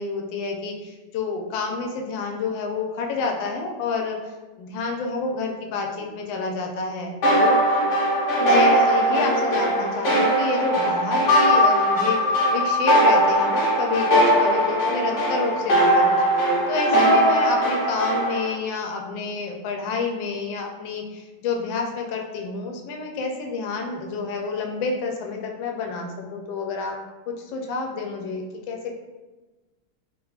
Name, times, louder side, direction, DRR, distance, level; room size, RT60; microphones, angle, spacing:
voice 1, 0.0-4.2 4.6-7.6 8.4-16.2 16.7-27.0 27.3-28.9, left 4 dB, 75° left, 2 dB, 1.3 m, -29 dB
sound 1, 7.2-18.5, equal, 50° left, 0.9 m, -20 dB
3.6 x 3.4 x 2.3 m, 1.2 s
omnidirectional pair, 2.2 m